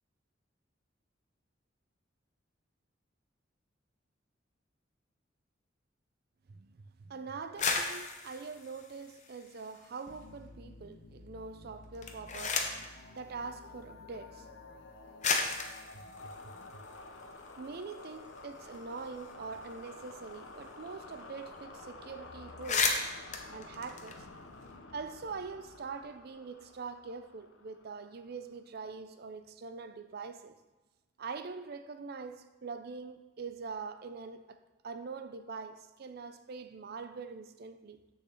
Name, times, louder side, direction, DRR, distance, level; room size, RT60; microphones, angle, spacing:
voice 1, 6.5-12.8 13.2-14.5 15.9-16.8 17.6-23.0 23.5-24.3 24.9-30.6 31.2-34.6 34.8-38.0, right 4 dB, 55° right, 0.5 m, -44 dB
sound 1, 7.4-10.0 10.4-11.0 11.8-12.9 14.0-14.1 14.8-14.9 15.2-17.5 17.9-18.0 18.2-20.9 21.1-21.2 21.5-21.8 22.1-22.2 22.5-24.7, left 4 dB, 40° left, 0.8 m, -35 dB
sound 2, 10.1-28.5, left 3 dB, 85° left, 0.7 m, -51 dB
6.8 x 3.9 x 6.5 m
head